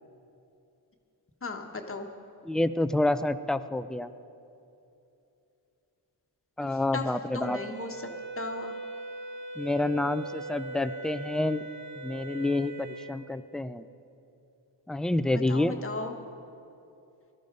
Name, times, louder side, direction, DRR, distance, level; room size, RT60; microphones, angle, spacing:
voice 1, 1.4-2.1 6.7-7.0 7.3-8.1 8.4-8.8 15.3-16.1, left 3 dB, 30° left, 3 dB, 1.3 m, -36 dB
voice 2, 2.4-4.1 6.6-7.6 9.6-11.6 12.0-13.9 14.9-15.7, left 2 dB, ahead, 12 dB, 0.4 m, -28 dB
Wind instrument woodwind instrument, 7.4-13.1, right 2 dB, 25° right, 2.2 m, -40 dB
18.5 x 12.5 x 5.3 m, 2.8 s
cardioid pair, 85°, 43 cm